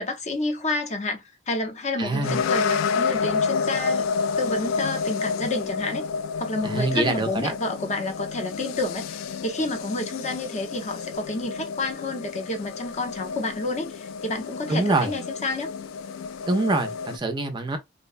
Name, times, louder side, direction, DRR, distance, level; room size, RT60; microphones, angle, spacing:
voice 1, 0.0-4.1 4.4-6.1 6.4-15.7, left 2 dB, 35° left, 0.6 m, -29 dB
voice 2, 2.0-2.4 6.6-7.5 14.7-15.1 16.5-17.8, right 2 dB, 25° right, 0.4 m, -24 dB
sound 1, 2.2-17.2, left 5 dB, 85° left, 0.3 m, -30 dB
2.7 x 2.1 x 2.4 m
head